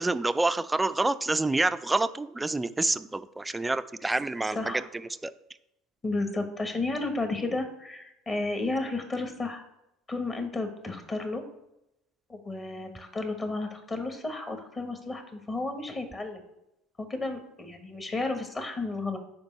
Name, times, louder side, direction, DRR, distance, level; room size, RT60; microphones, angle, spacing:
voice 1, 0.0-5.3, right 2 dB, 15° right, 12 dB, 0.3 m, -28 dB
voice 2, 4.5-4.8 6.0-9.6 10.1-11.4 12.3-16.4 17.1-19.2, left 2 dB, 25° left, 6 dB, 1.3 m, -32 dB
5.2 x 4.5 x 5.4 m, 0.88 s
hypercardioid pair, 75°, 0 cm